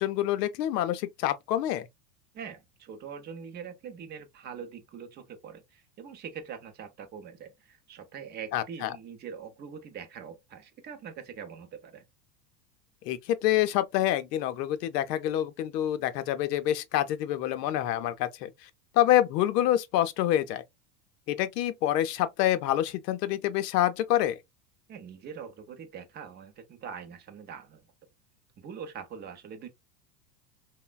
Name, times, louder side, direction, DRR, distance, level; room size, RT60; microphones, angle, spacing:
voice 1, 0.0-1.9 8.5-8.9 13.0-18.5 18.9-20.6 21.3-24.4, left 12 dB, 75° left, 0.6 m, -27 dB
voice 2, 2.3-12.0 24.9-27.9 28.6-29.7, right 7 dB, 20° right, 0.5 m, -43 dB
3.0 x 2.2 x 2.2 m
hypercardioid pair, 105°, 49 cm